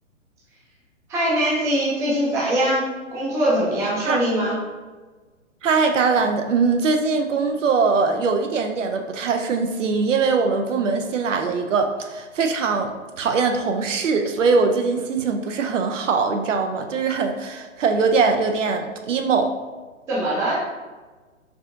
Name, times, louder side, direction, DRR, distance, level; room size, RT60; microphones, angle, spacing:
voice 1, 1.1-2.8 3.1-4.5 20.1-20.5, right 1 dB, 10° right, -7 dB, 0.5 m, -22 dB
voice 2, 5.6-19.5, right 4 dB, 70° right, 5 dB, 0.6 m, -22 dB
4.7 x 2.5 x 2.5 m, 1.3 s
figure-of-eight pair, 125°, 39 cm